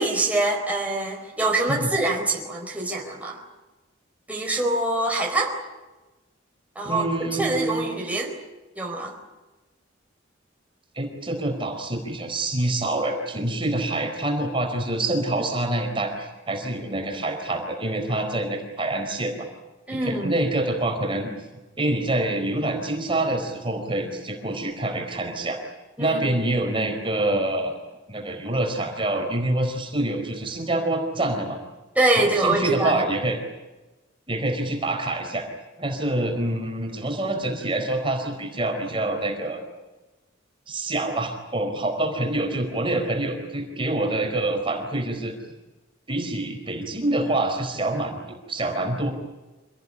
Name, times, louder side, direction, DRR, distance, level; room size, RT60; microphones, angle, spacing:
voice 1, 0.0-3.4 4.3-5.5 6.7-8.3 8.8-9.2 19.9-20.4 26.0-26.3 31.9-33.0, right 2 dB, 10° right, -1 dB, 4.6 m, -24 dB
voice 2, 6.8-7.9 10.9-19.4 19.9-21.3 21.8-25.6 26.0-27.7 28.1-31.6 32.2-33.4 34.3-35.4 35.8-39.6 40.7-45.3 46.1-49.1, right 2 dB, 25° right, 3 dB, 4.5 m, -26 dB
27.0 x 18.5 x 9.8 m, 1.1 s
head